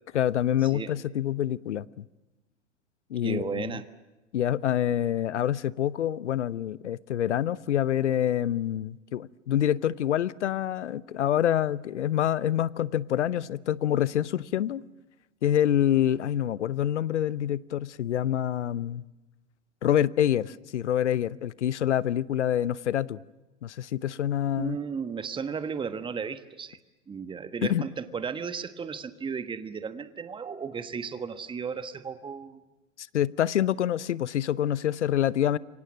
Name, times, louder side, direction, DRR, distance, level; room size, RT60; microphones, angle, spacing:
voice 1, 0.1-2.1 3.1-3.7 4.3-14.8 15.4-19.0 19.8-23.2 23.6-24.8 27.6-27.9 33.0-35.6, left 11 dB, 70° left, 0.8 m, -26 dB
voice 2, 3.2-3.8 24.6-26.8 27.1-32.6, right 6 dB, 15° right, 1.4 m, -34 dB
28.5 x 24.5 x 7.4 m
figure-of-eight pair, 95°, 36 cm